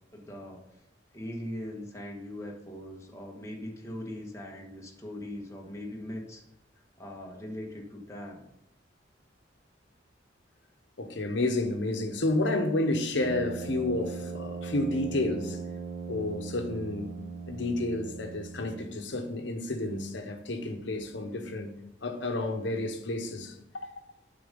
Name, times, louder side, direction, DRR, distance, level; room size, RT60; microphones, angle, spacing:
voice 1, 0.1-0.6 1.1-6.4 7.0-8.4, left 1 dB, 15° left, -1 dB, 1.3 m, -40 dB
voice 2, 11.0-15.6 16.1-17.1 17.5-21.7 22.0-23.9, left 2 dB, 70° left, 5 dB, 1.0 m, -30 dB
Brass instrument, 13.1-19.0, right 5 dB, 45° right, 0.3 m, -39 dB
8.8 x 4.0 x 5.2 m, 0.82 s
head